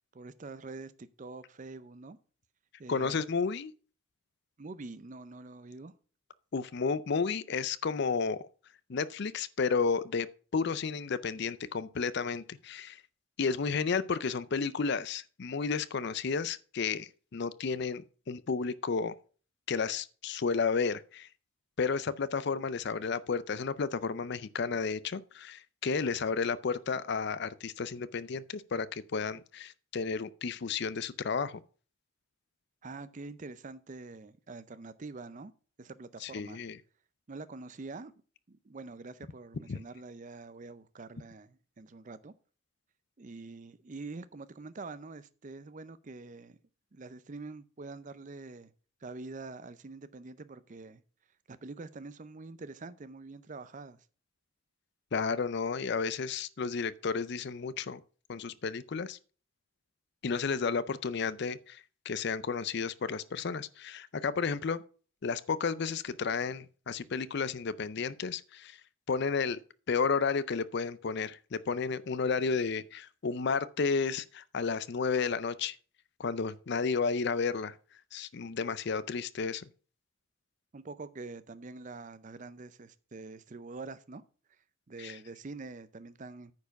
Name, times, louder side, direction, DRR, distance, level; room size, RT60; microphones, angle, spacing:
voice 1, 0.1-2.2 2.8-3.3 4.6-5.9 32.8-35.5 35.8-36.6 37.3-38.1 38.5-42.3 43.2-46.6 46.9-48.7 49.0-51.0 51.5-54.0 80.7-84.2 84.9-86.5, right 3 dB, 35° right, 0.5 m, -45 dB
voice 2, 2.9-3.7 6.5-8.4 8.9-10.3 10.5-13.0 13.4-19.1 19.7-21.3 21.8-31.6 36.2-36.8 39.7-39.8 55.1-58.0 58.3-59.2 60.2-61.8 62.1-64.8 65.2-68.8 69.1-69.6 69.9-75.8 76.2-77.7 78.1-79.7 85.0-85.2, left 5 dB, 55° left, 0.5 m, -32 dB
9.5 x 4.6 x 5.8 m
head